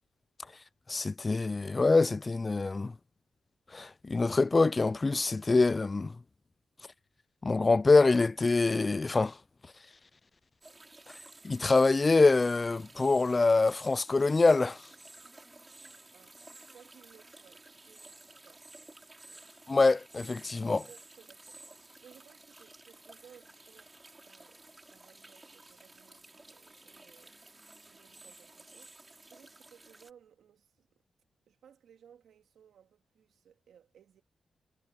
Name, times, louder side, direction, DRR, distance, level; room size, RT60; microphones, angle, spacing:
voice 1, 0.9-2.9 3.7-6.1 7.4-9.4 11.4-14.8 19.7-20.8, left 3 dB, 30° left, 0.3 m, -25 dB
sound 1, 10.6-30.1, right 2 dB, 20° right, 4.8 m, -54 dB
voice 2, 16.7-18.6 19.3-19.5 20.7-27.3 27.8-30.9 31.5-34.2, right 8 dB, 80° right, 3.2 m, -60 dB
cardioid pair, 70°, 0 cm